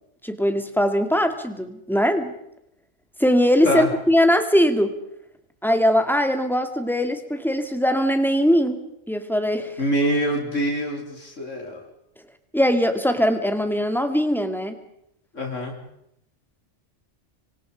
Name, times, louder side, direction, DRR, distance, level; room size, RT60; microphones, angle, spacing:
voice 1, 0.2-2.3 3.2-5.0 5.6-8.8 9.1-9.8 12.5-14.7, equal, ahead, 7 dB, 2.1 m, -21 dB
voice 2, 9.8-11.8 15.3-15.7, equal, 75° left, 1 dB, 4.3 m, -25 dB
26.5 x 24.5 x 5.2 m, 0.78 s
omnidirectional pair, 1.3 m